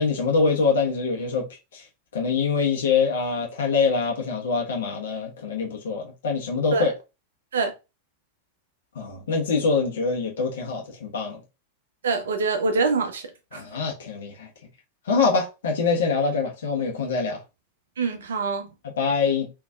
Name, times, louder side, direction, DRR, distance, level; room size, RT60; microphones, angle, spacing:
voice 1, 0.0-1.5 1.7-1.8 2.1-6.9 8.9-11.4 13.5-14.5 15.1-17.4 19.0-19.5, left 4 dB, 60° left, 1.2 m, -24 dB
voice 2, 12.0-13.2 13.5-13.6 18.0-18.7, right 4 dB, 65° right, 0.7 m, -24 dB
3.8 x 3.0 x 2.4 m
figure-of-eight pair, 90°, 0 cm